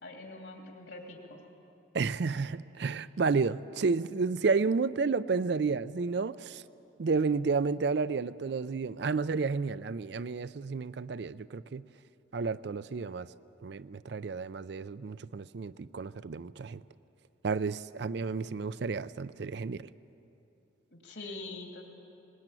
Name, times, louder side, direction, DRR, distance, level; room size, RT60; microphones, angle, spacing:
voice 1, 0.0-1.4 20.9-21.9, left 2 dB, 70° left, 3.1 m, -44 dB
voice 2, 1.9-6.6 7.0-11.8 12.3-13.3 13.6-16.8 17.4-19.9, right 4 dB, 60° right, 0.4 m, -31 dB
19.5 x 19.5 x 9.0 m
head